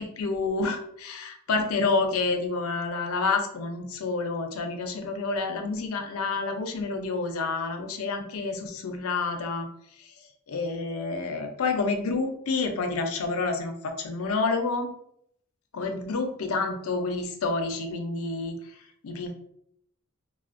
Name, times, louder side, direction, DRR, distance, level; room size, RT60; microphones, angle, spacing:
voice 1, 0.0-9.7 10.5-14.9 15.7-18.5 19.0-19.3, left 3 dB, 65° left, 5 dB, 0.5 m, -29 dB
4.1 x 2.0 x 2.4 m, 0.71 s
head